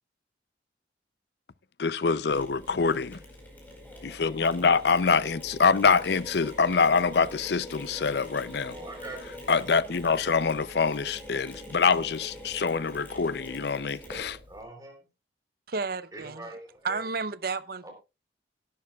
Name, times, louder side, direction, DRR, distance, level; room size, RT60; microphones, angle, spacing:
voice 1, 1.8-3.2 4.0-8.7 9.5-14.4, left 5 dB, 65° left, 0.5 m, -25 dB
Mechanisms, 2.3-14.6, equal, 10° left, 4.5 m, -44 dB
voice 2, 8.7-9.2 14.5-15.0 16.1-17.0 17.8-17.9, right 2 dB, 20° right, 3.7 m, -42 dB
voice 3, 15.7-16.5 16.8-17.9, right 4 dB, 55° right, 0.7 m, -32 dB
17.0 x 11.5 x 2.4 m
head